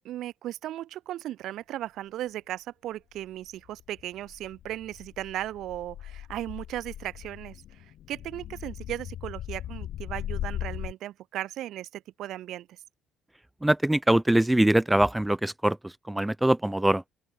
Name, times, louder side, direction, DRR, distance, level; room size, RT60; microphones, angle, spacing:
voice 1, 0.0-12.8, right 13 dB, 75° right, 7.6 m, -36 dB
sound 1, 3.2-10.9, left 12 dB, 65° left, 2.3 m, -39 dB
voice 2, 13.6-17.0, right 1 dB, 5° right, 1.3 m, -23 dB
open air
cardioid pair, 105°, 0 cm